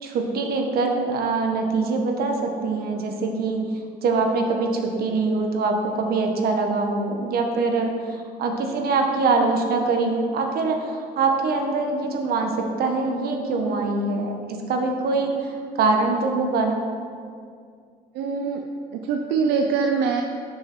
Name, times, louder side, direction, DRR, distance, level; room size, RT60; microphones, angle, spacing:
voice 1, 0.0-3.6 4.0-14.3 14.7-16.8, right 3 dB, 65° right, 3 dB, 1.4 m, -23 dB
voice 2, 18.1-18.6 18.9-20.2, right 5 dB, 85° right, 3 dB, 0.6 m, -23 dB
11.5 x 6.4 x 4.5 m, 2.2 s
cardioid pair, 110°, 17 cm